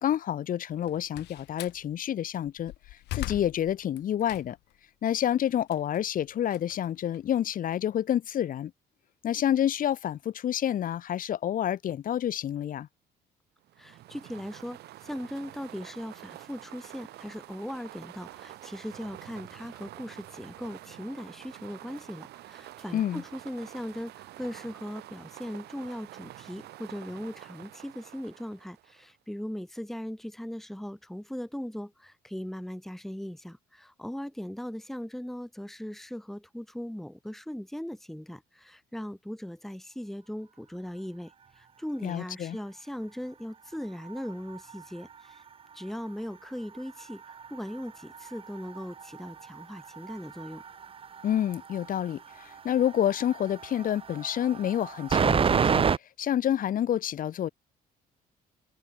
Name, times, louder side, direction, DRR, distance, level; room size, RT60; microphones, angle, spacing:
voice 1, 0.0-2.7 3.1-4.6 5.0-8.7 9.2-12.9 22.9-23.2 42.0-42.6 51.2-55.9 56.2-57.5, left 10 dB, 55° left, 1.9 m, -28 dB
Slam, 0.7-1.8 2.4-4.8 5.2-7.6, left 17 dB, 80° left, 4.5 m, -40 dB
sound 1, 13.7-29.1, right 15 dB, 75° right, 2.4 m, -48 dB
voice 2, 13.8-45.4 45.7-50.6, equal, ahead, 1.6 m, -39 dB
sound 2, 43.7-46.1 46.5-56.0, right 6 dB, 35° right, 1.2 m, -32 dB
cardioid pair, 110°, 17 cm